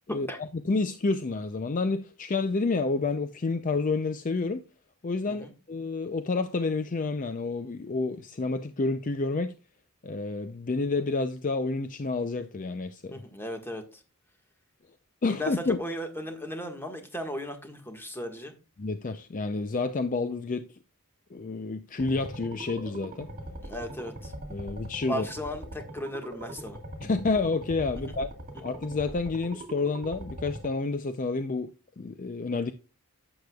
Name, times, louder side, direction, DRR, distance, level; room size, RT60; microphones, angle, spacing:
voice 1, 0.6-4.6 5.0-9.5 10.0-13.2 15.2-15.8 18.8-20.7 21.3-23.3 24.5-25.3 27.0-28.3 28.6-32.7, left 3 dB, 35° left, 0.5 m, -29 dB
voice 2, 13.1-13.8 15.2-18.5 23.6-24.3 25.1-26.8, equal, 10° left, 1.5 m, -36 dB
sound 1, 22.0-30.7, right 1 dB, 40° right, 2.0 m, -41 dB
11.5 x 7.9 x 2.3 m
head